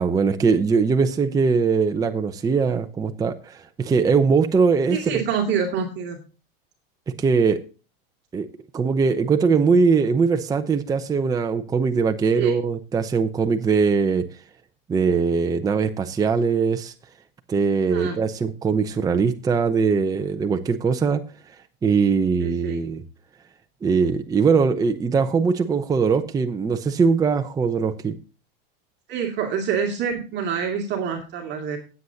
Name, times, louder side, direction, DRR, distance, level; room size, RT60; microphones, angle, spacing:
voice 1, 0.0-5.2 7.2-7.6 8.3-8.5 8.7-14.2 14.9-16.9 17.5-21.2 21.8-23.0 23.8-28.2, right 5 dB, 10° right, 7 dB, 0.7 m, -21 dB
voice 2, 4.9-6.2 12.3-12.5 17.9-18.2 22.4-22.8 29.1-31.8, right 7 dB, 35° right, 1 dB, 2.2 m, -26 dB
16.5 x 8.0 x 2.8 m, 0.34 s
supercardioid pair, 135°, 30 cm